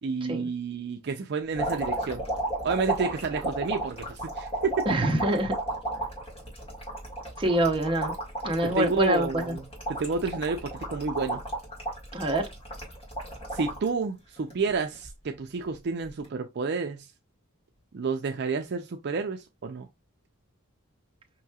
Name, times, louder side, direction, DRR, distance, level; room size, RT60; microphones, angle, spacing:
voice 1, 0.0-2.2 2.6-4.8 8.6-9.6 9.9-11.4 13.5-17.1 17.9-19.9, right 4 dB, 50° right, 0.4 m, -30 dB
sound 1, 1.5-13.9 14.4-15.1 16.1-16.3, right 2 dB, 25° left, 1.8 m, -33 dB
voice 2, 4.9-5.5 7.4-8.1 8.4-9.6 12.1-12.5, right 1 dB, 25° right, 0.8 m, -25 dB
5.3 x 3.0 x 2.3 m
head